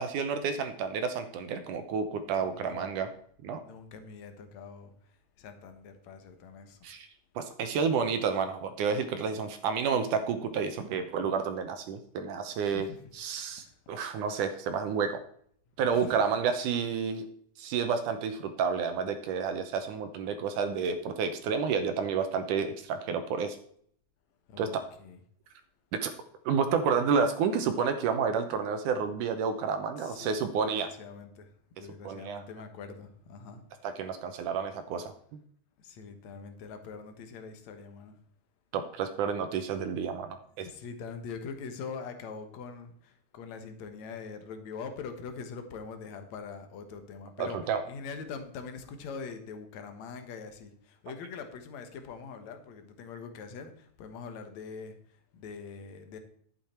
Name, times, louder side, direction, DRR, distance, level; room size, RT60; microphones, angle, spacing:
voice 1, 0.0-3.1 3.4-3.6 6.8-7.1 7.4-12.9 13.1-15.2 15.8-17.3 17.6-23.6 24.6-24.8 26.0-26.1 26.5-30.9 31.8-32.4 33.8-35.1 38.7-40.7 47.4-47.8, right 6 dB, 75° right, 2.1 m, -30 dB
voice 2, 2.4-3.0 3.5-6.9 12.6-13.0 13.5-13.8 15.9-16.2 24.5-25.2 30.0-31.5 31.8-33.6 35.8-38.2 40.6-47.6 47.8-56.2, left 5 dB, 60° left, 2.2 m, -43 dB
11.5 x 8.8 x 4.4 m
omnidirectional pair, 4.2 m